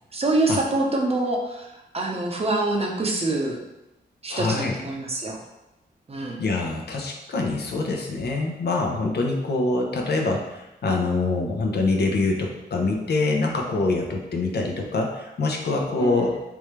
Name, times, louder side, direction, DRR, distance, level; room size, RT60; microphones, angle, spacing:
voice 1, 0.1-1.6 1.9-3.6 4.2-5.4 6.1-6.4 16.0-16.3, right 2 dB, 35° right, 0 dB, 0.7 m, -25 dB
voice 2, 4.3-4.7 6.4-16.3, left 3 dB, 65° left, 1 dB, 0.7 m, -25 dB
3.5 x 3.3 x 3.2 m, 0.96 s
cardioid pair, 90°, 18 cm